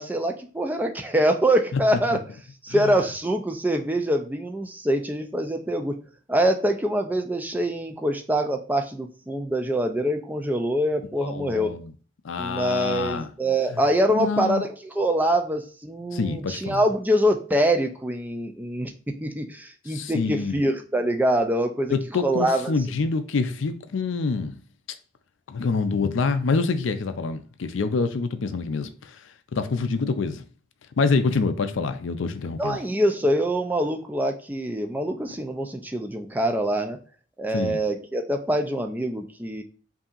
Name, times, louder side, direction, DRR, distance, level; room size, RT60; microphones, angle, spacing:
voice 1, 0.0-2.2 2.6-6.0 6.3-11.8 12.4-22.7 32.6-37.0 37.4-39.6, right 1 dB, 10° right, 0.4 m, -24 dB
voice 2, 11.2-11.9 12.2-13.3 13.7-13.8 14.1-14.6 16.1-16.8 19.9-20.6 21.9-24.6 25.5-29.1 29.5-30.4 31.0-32.8 37.5-37.8, left 4 dB, 65° left, 0.4 m, -26 dB
5.4 x 2.7 x 2.4 m
head